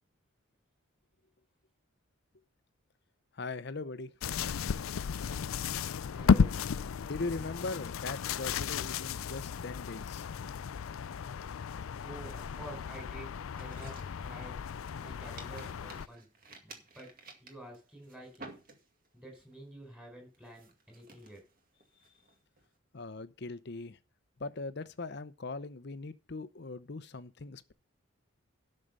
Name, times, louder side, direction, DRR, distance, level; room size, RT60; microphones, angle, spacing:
voice 1, 3.4-4.1 7.0-10.2 22.9-24.0 24.4-27.7, left 3 dB, 55° left, 0.8 m, -40 dB
Forest in The Netherlands, 4.2-16.1, left 6 dB, 80° left, 0.4 m, -33 dB
voice 2, 6.1-6.6 12.0-14.6 15.0-16.3 16.6-18.6 19.1-21.4, right 1 dB, 5° right, 4.8 m, -49 dB
sound 1, 13.5-15.0 15.4-19.2 19.5-19.9 20.3-22.7, right 3 dB, 45° right, 2.1 m, -53 dB
12.5 x 6.6 x 5.4 m
head